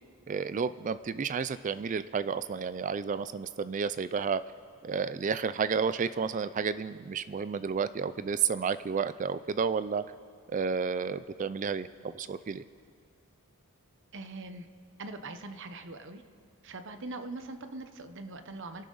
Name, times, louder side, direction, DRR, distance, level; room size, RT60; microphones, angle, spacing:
voice 1, 0.3-4.4 4.8-10.0 10.5-12.6, right 6 dB, 35° right, 14 dB, 0.3 m, -31 dB
voice 2, 14.1-14.7 15.0-16.2 16.6-18.9, right 2 dB, 55° right, 8 dB, 1.0 m, -42 dB
28.0 x 11.5 x 4.0 m, 2.2 s
head